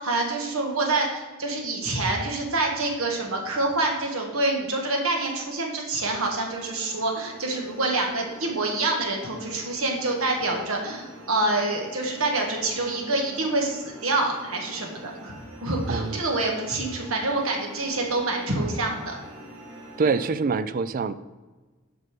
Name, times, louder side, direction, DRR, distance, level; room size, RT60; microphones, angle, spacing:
voice 1, 0.0-15.3 15.6-19.2, right 2 dB, 70° right, 1 dB, 1.6 m, -26 dB
sound 1, 6.4-20.3, right 1 dB, 90° right, 2.2 m, -45 dB
voice 2, 15.9-16.2 20.0-21.1, right 4 dB, 40° right, 14 dB, 0.4 m, -25 dB
7.7 x 5.4 x 5.0 m, 1.3 s
head